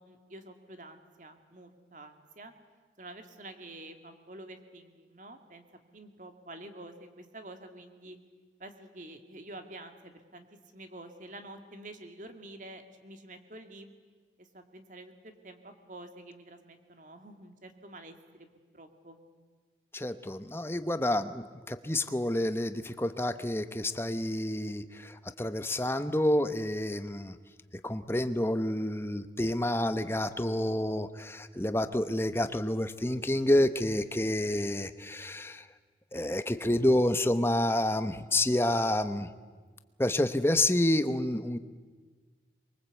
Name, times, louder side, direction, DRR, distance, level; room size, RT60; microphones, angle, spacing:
voice 1, 0.0-2.5 3.0-5.6 5.9-8.2 8.6-10.5 10.7-13.9 14.4-18.5 18.7-19.2, right 1 dB, 45° right, 6 dB, 2.2 m, -48 dB
voice 2, 19.9-27.3 27.8-35.6 36.1-39.3 40.0-41.6, left 1 dB, 15° left, 11 dB, 0.9 m, -29 dB
24.0 x 23.0 x 8.2 m, 1.5 s
head